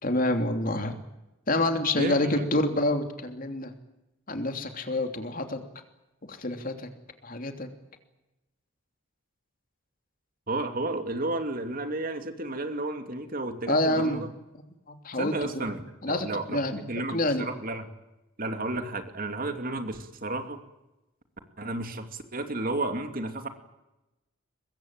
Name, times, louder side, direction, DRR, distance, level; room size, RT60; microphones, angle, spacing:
voice 1, 0.0-1.0 1.5-3.7 4.3-5.6 6.3-6.9 7.2-7.7 13.7-14.3 14.9-15.7 16.0-16.8 17.1-17.5, left 1 dB, 45° left, 6 dB, 3.1 m, -27 dB
voice 2, 2.0-2.4 10.5-14.3 15.2-17.9 18.4-20.6 21.6-23.5, right 2 dB, 45° right, 7 dB, 2.7 m, -32 dB
24.5 x 21.5 x 9.0 m, 0.97 s
head